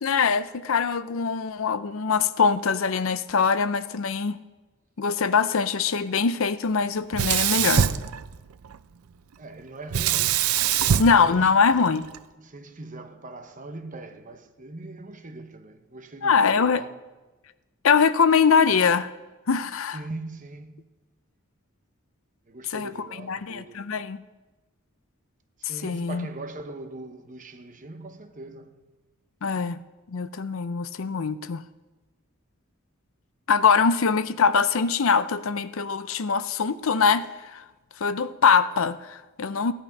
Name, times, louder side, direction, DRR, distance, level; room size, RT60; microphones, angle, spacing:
voice 1, 0.0-4.4 5.0-7.9 11.0-12.0 16.2-16.8 17.8-19.1 19.5-20.0 22.7-22.9 23.3-24.2 25.8-26.3 29.4-29.8 30.1-31.6 33.5-37.6 38.0-39.7, left 5 dB, 65° left, 0.5 m, -22 dB
Sink (filling or washing), 7.1-8.8 9.9-12.2, right 9 dB, 85° right, 0.5 m, -24 dB
voice 2, 9.4-12.0 12.4-17.0 19.9-20.8 22.5-23.9 25.6-28.9, right 2 dB, 35° right, 1.0 m, -41 dB
16.0 x 11.0 x 5.3 m
head